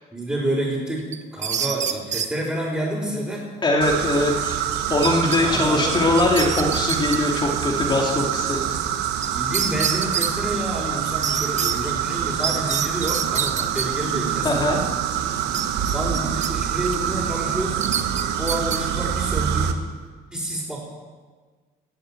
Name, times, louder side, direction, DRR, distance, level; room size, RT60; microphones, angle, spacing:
voice 1, 0.1-3.5 5.4-5.9 9.1-14.8 15.9-17.8 18.4-19.8 20.3-20.8, right 1 dB, 10° right, -9 dB, 4.8 m, -28 dB
sound 1, 1.1-2.3 5.0-5.4 5.7-5.8 6.2-7.2 9.2-9.3 9.5-10.3 11.2-11.7 12.4-13.9 15.5-16.5 16.9-17.1 17.8-18.8, right 7 dB, 45° right, 1.1 m, -26 dB
voice 2, 3.6-4.6 4.9-8.7 14.4-14.8, left 2 dB, 25° left, 0 dB, 2.3 m, -21 dB
sound 2, 3.8-19.7, right 9 dB, 85° right, 1.2 m, -26 dB
16.5 x 7.7 x 8.9 m, 1.4 s
cardioid pair, 110°, 17 cm